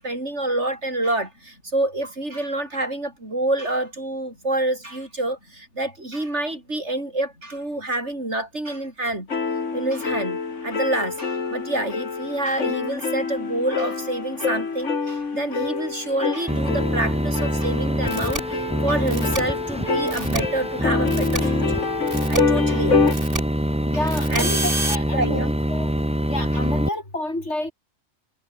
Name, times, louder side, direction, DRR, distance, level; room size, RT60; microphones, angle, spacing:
voice 1, 0.0-9.3 9.7-21.9 22.3-23.3 23.9-24.0 24.3-24.5 25.1-25.6 26.5-26.7, right 1 dB, 70° right, 7.4 m, -27 dB
sound 1, 9.3-23.1, left 5 dB, 85° left, 2.4 m, -26 dB
sound 2, 16.5-26.9, equal, 5° right, 3.3 m, -25 dB
sound 3, 18.1-18.4 19.1-19.4 20.1-20.4 21.1-21.4 22.1-22.4 23.1-23.4 24.1-25.0, right 2 dB, 50° right, 4.7 m, -28 dB
voice 2, 23.8-25.9 26.3-27.7, left 1 dB, 70° left, 7.0 m, -29 dB
omnidirectional pair, 1.2 m